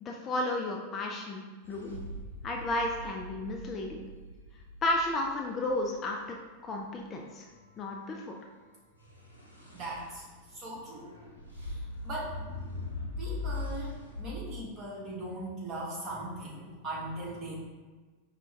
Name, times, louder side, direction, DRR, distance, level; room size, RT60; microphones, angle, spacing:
voice 1, 0.0-2.0 2.4-4.1 4.8-6.4 6.6-7.4 7.8-8.3, left 1 dB, 25° left, 1 dB, 0.4 m, -33 dB
sound 1, 1.6-5.7 9.0-14.4, left 2 dB, 90° right, 0.7 m, -41 dB
voice 2, 9.7-10.2 10.5-11.1 11.6-12.4 13.2-17.6, right 1 dB, 30° right, -6 dB, 1.4 m, -39 dB
5.1 x 2.2 x 3.4 m, 1.3 s
figure-of-eight pair, 90°, 0 cm